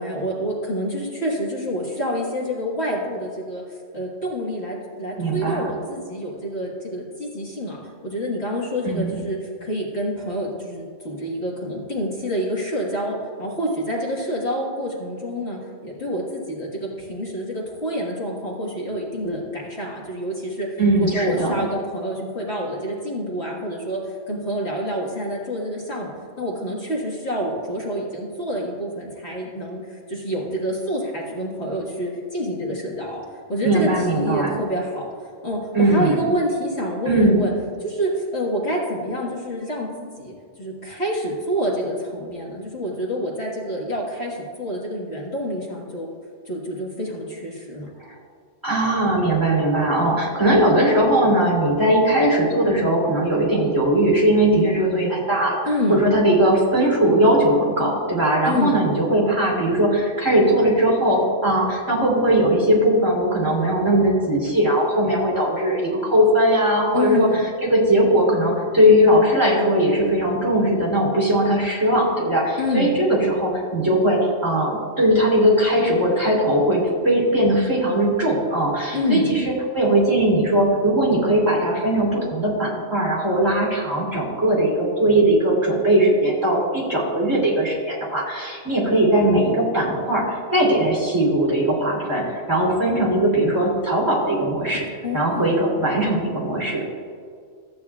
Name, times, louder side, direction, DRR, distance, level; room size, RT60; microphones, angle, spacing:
voice 1, 0.0-7.8 8.0-24.0 24.3-26.1 26.4-33.2 33.5-35.1 35.4-37.5 37.8-46.1 46.5-47.9 55.7-56.0 58.4-58.8 66.9-67.4 72.6-73.0 78.9-79.3 95.0-95.5, equal, 55° left, -4 dB, 1.9 m, -27 dB
voice 2, 5.2-5.7 8.8-9.2 20.8-21.6 33.6-34.6 35.7-36.2 37.0-37.5 48.1-48.2 48.6-55.6 55.9-67.3 67.6-94.9 95.1-96.8, right 1 dB, 15° right, -4 dB, 2.8 m, -19 dB
14.5 x 8.8 x 2.4 m, 2.1 s
omnidirectional pair, 1.3 m